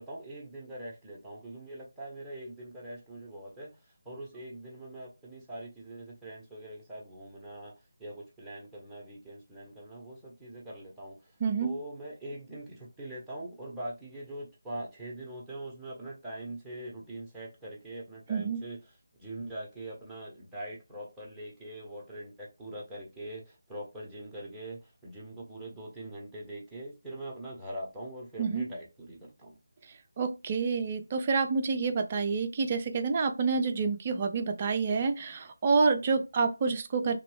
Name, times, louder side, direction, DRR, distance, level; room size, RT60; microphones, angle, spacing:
voice 1, 0.0-7.7 8.0-11.3 11.6-18.8 19.2-29.6, right 1 dB, 5° right, 0.9 m, -43 dB
voice 2, 11.4-11.7 18.3-18.6 28.4-28.7 30.2-37.2, right 4 dB, 25° right, 0.5 m, -28 dB
3.0 x 2.9 x 3.1 m
figure-of-eight pair, 155°, 0 cm